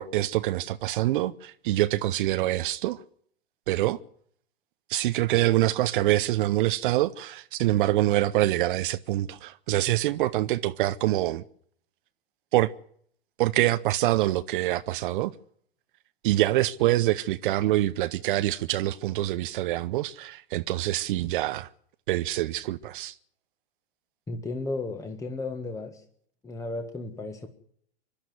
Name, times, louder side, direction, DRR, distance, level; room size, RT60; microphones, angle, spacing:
voice 1, 0.0-3.0 3.7-4.0 4.9-11.4 12.5-12.7 13.4-15.3 16.2-21.7 22.1-23.2, right 15 dB, 55° right, 0.8 m, -25 dB
voice 2, 24.3-26.0 26.4-27.5, left 2 dB, 10° left, 1.6 m, -34 dB
24.5 x 12.0 x 9.5 m
hypercardioid pair, 110°, 31 cm